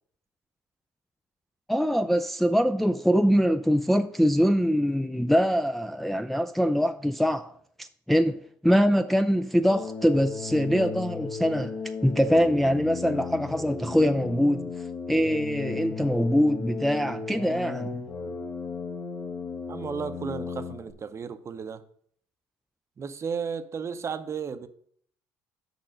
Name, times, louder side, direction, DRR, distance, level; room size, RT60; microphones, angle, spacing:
voice 1, 1.7-7.5 7.8-11.7 12.0-14.7 15.1-18.0, equal, ahead, 0.4 m, -23 dB
sound 1, 9.6-20.9, left 4 dB, 40° left, 1.2 m, -35 dB
voice 2, 19.7-21.8 23.0-24.7, right 6 dB, 35° right, 0.7 m, -34 dB
6.6 x 5.3 x 6.0 m
supercardioid pair, 85°, 8 cm